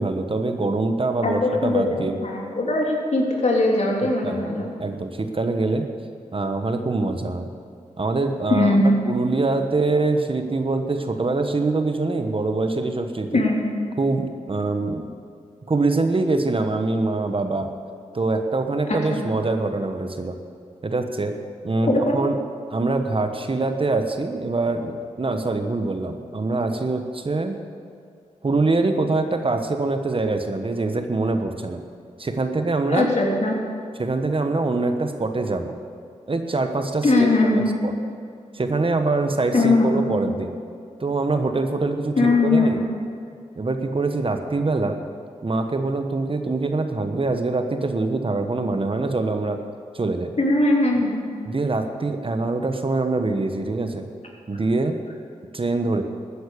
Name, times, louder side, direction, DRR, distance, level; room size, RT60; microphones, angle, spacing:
voice 1, 0.0-2.2 4.0-4.4 4.8-5.9 6.3-7.5 8.0-8.8 9.1-13.4 14.0-15.0 15.7-17.7 18.1-20.4 20.8-21.4 21.6-22.4 22.7-27.6 28.4-31.8 32.2-33.1 34.0-35.7 36.3-37.9 38.5-40.5 41.0-42.2 42.4-42.8 43.6-45.0 45.4-49.6 49.9-50.3 51.5-54.0 54.5-55.0 55.5-56.0, right 3 dB, 40° right, 6 dB, 1.2 m, -24 dB
voice 2, 1.2-4.7 8.5-8.9 13.3-13.6 18.9-19.2 21.8-22.2 32.9-33.6 37.0-37.7 39.5-40.1 42.2-42.7 50.4-51.2, left 2 dB, 55° left, -1 dB, 3.2 m, -20 dB
13.5 x 9.4 x 6.9 m, 2.4 s
supercardioid pair, 40°, 14 cm